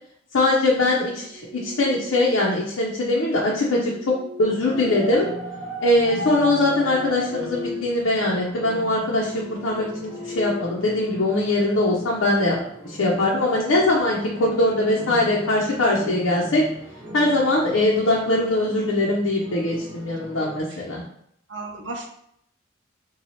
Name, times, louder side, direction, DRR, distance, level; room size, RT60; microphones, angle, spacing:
voice 1, 0.3-5.3 5.8-12.6 12.8-16.6 17.1-21.0, left 2 dB, 90° left, -4 dB, 0.7 m, -21 dB
sound 1, 1.0-2.5 3.5-5.7 6.1-8.0 8.3-8.5 9.0-11.4, left 2 dB, 25° left, 0.7 m, -39 dB
sound 2, 4.4-20.6, right 1 dB, 25° right, 1.2 m, -38 dB
voice 2, 21.5-22.1, right 2 dB, 60° right, 1 dB, 0.6 m, -35 dB
4.1 x 2.3 x 3.0 m, 0.72 s
head